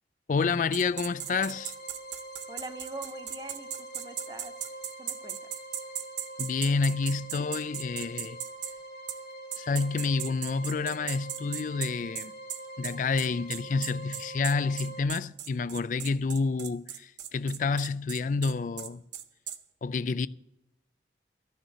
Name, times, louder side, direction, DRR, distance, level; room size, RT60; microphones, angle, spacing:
voice 1, 0.3-1.7 6.4-8.4 9.6-12.3 12.8-19.0 19.8-20.3, left 4 dB, 45° left, 0.3 m, -29 dB
sound 1, 0.7-8.7 9.1-9.2 9.5-19.6, right 10 dB, 85° right, 0.7 m, -37 dB
sound 2, 0.8-15.0, right 1 dB, 75° left, 1.6 m, -44 dB
voice 2, 2.5-4.5 5.0-5.5, right 2 dB, 20° right, 0.6 m, -43 dB
12.5 x 6.5 x 8.9 m
head